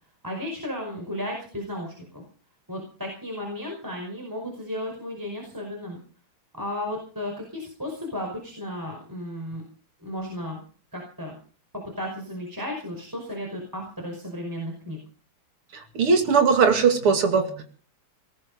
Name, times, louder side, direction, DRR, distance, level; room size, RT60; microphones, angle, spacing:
voice 1, 0.2-2.2 2.7-6.0 6.5-9.6 10.0-10.6 10.9-11.4 12.0-15.0, left 1 dB, 10° right, 1 dB, 5.1 m, -34 dB
voice 2, 15.7-17.6, right 5 dB, 90° right, 6 dB, 3.4 m, -20 dB
19.5 x 13.5 x 5.4 m, 0.41 s
omnidirectional pair, 2.4 m